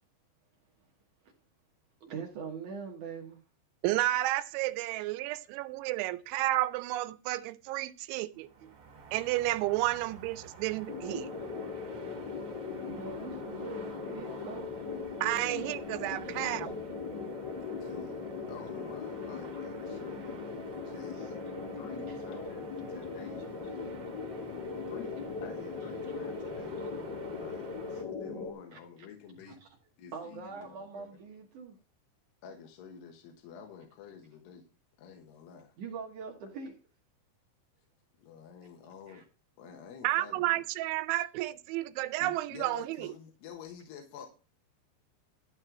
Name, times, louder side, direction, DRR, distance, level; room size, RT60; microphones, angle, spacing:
voice 1, 2.0-3.4 8.6-8.7 11.4-11.5 12.8-14.7 24.4-24.5 28.7-28.8 30.1-31.8 35.8-36.7 39.1-39.2, right 5 dB, 65° right, 2.0 m, -42 dB
voice 2, 3.8-8.5 9.1-11.3 15.2-16.7 40.0-43.1, right 16 dB, 85° right, 2.9 m, -31 dB
sound 1, 8.3-28.0, right 4 dB, 35° right, 2.7 m, -51 dB
sound 2, 10.9-28.5, left 4 dB, 50° left, 1.3 m, -39 dB
voice 3, 16.3-16.8 17.8-18.2 18.5-20.4 20.7-21.3 21.8-23.4 24.9-26.7 27.3-29.6 30.0-31.1 32.4-34.6 35.0-35.7 38.2-39.2 39.6-40.6 42.2-44.3, left 6 dB, 70° left, 3.3 m, -49 dB
12.5 x 4.3 x 7.2 m
omnidirectional pair, 5.4 m